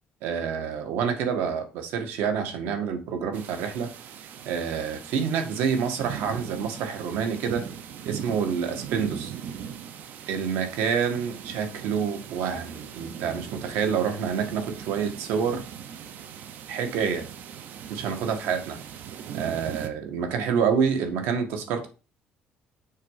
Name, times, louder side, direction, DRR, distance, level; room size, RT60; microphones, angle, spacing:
voice 1, 0.2-3.9 4.5-7.6 8.1-9.3 10.3-15.6 16.7-17.2 17.9-18.8 19.3-21.9, right 6 dB, 80° right, 7 dB, 1.8 m, -27 dB
sound 1, 3.3-19.9, right 8 dB, 55° right, 0.9 m, -40 dB
6.6 x 4.6 x 5.6 m, 0.32 s
cardioid pair, 155°, 3 cm